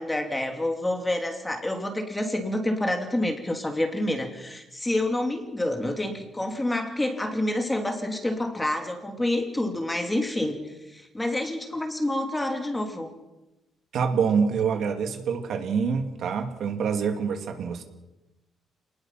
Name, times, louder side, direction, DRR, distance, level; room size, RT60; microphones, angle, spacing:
voice 1, 0.0-13.1, left 1 dB, 10° left, 4 dB, 2.8 m, -28 dB
voice 2, 13.9-17.8, right 6 dB, 60° right, 5 dB, 2.6 m, -26 dB
27.5 x 20.0 x 6.0 m, 0.98 s
cardioid pair, 145°, 0 cm